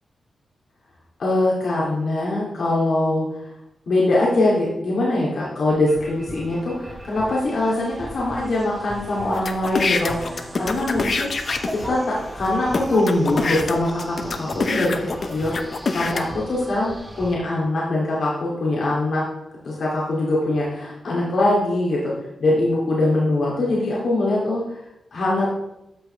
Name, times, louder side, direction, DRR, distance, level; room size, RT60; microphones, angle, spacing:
voice 1, 1.2-3.2 3.9-11.3 11.7-14.9 15.2-19.2 19.6-22.1 22.4-24.6 25.1-25.5, left 2 dB, 70° left, -5 dB, 2.5 m, -22 dB
sound 1, 5.7-17.4, right 1 dB, 10° right, 1.3 m, -37 dB
sound 2, 9.3-11.9 12.4-12.5 12.7-16.2, left 4 dB, 50° left, 0.7 m, -25 dB
12.5 x 6.7 x 3.3 m, 0.87 s
wide cardioid pair, 105°, 0 cm